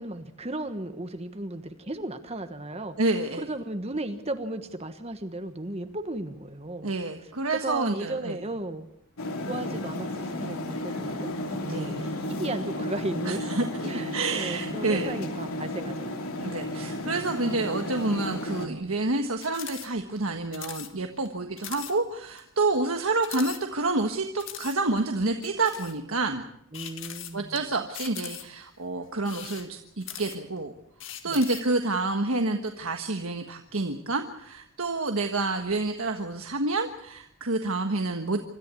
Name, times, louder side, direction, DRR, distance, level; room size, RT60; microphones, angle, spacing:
voice 1, 0.0-3.0 3.4-6.9 7.5-8.9 9.4-13.5 13.8-16.2 26.7-27.5 31.2-31.4, right 1 dB, 30° right, 8 dB, 1.3 m, -35 dB
voice 2, 3.0-3.4 6.8-8.4 11.7-12.0 13.2-13.7 13.9-15.1 16.4-26.4 27.3-29.7 30.0-30.7 31.2-38.4, right 2 dB, 75° right, 4 dB, 1.4 m, -28 dB
sound 1, 9.2-18.7, left 1 dB, 80° left, 2.8 m, -33 dB
sound 2, 19.4-19.9 20.2-20.3 20.5-20.9 21.3-21.4 21.6-21.9 22.4-22.5 23.2-24.0 24.4-24.8 25.4-26.0 26.7-27.6 27.9-28.6 29.2-30.6 31.0-31.7, left 11 dB, 60° left, 1.9 m, -40 dB
25.5 x 14.0 x 8.4 m, 0.75 s
head